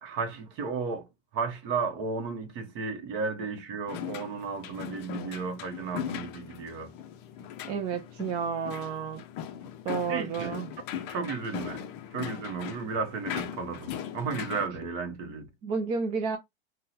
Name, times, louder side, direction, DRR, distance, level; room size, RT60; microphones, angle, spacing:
voice 1, 0.0-6.9 10.1-10.5 11.1-15.5, right 4 dB, 40° right, 0.9 m, -34 dB
sound 1, 3.9-14.7, left 9 dB, 35° left, 0.5 m, -39 dB
voice 2, 7.6-9.2 9.8-10.7 15.6-16.4, right 5 dB, 20° right, 0.3 m, -31 dB
3.6 x 2.2 x 2.8 m
hypercardioid pair, 130°, 31 cm